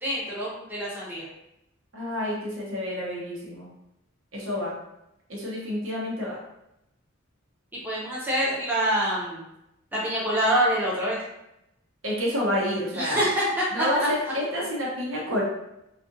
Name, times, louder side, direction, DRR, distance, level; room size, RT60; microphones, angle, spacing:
voice 1, 0.0-1.3 7.8-9.5 9.9-11.2 12.9-13.6 14.2-14.3, equal, 10° right, -7 dB, 0.6 m, -26 dB
voice 2, 1.9-3.7 4.3-4.7 5.3-6.4 12.0-13.3 13.7-15.4, left 1 dB, 65° right, -4 dB, 0.9 m, -29 dB
2.6 x 2.5 x 2.6 m, 0.86 s
head